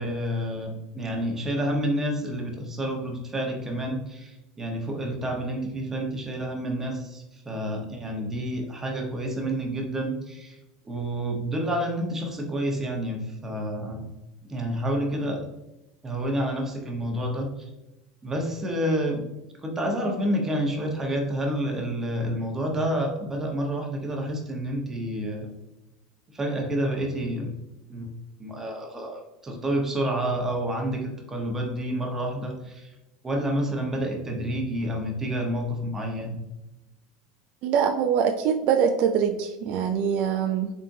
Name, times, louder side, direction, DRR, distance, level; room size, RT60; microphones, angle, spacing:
voice 1, 0.0-10.6 10.8-14.0 14.5-15.5 16.0-17.5 18.2-19.3 19.6-25.5 26.3-27.5 27.9-28.1 28.4-32.9 33.2-36.4, equal, 20° right, 1 dB, 1.1 m, -29 dB
voice 2, 37.6-40.7, right 7 dB, 55° right, 5 dB, 0.4 m, -23 dB
3.9 x 3.5 x 2.7 m, 0.97 s
supercardioid pair, 105°, 2 cm